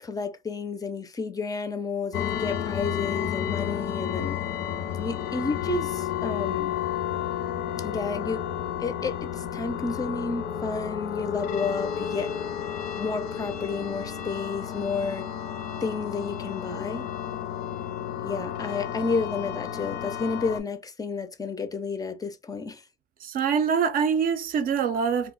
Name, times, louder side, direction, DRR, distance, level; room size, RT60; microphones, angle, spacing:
voice 1, 0.0-4.4 5.0-6.7 7.8-8.4 8.8-12.3 13.0-15.3 15.8-17.1 18.2-22.8, left 4 dB, 20° left, 0.4 m, -31 dB
sound 1, 2.1-20.6, left 9 dB, 85° left, 0.5 m, -32 dB
voice 2, 23.2-25.3, right 6 dB, 55° right, 0.4 m, -24 dB
2.3 x 2.0 x 3.6 m
cardioid pair, 110°, 17 cm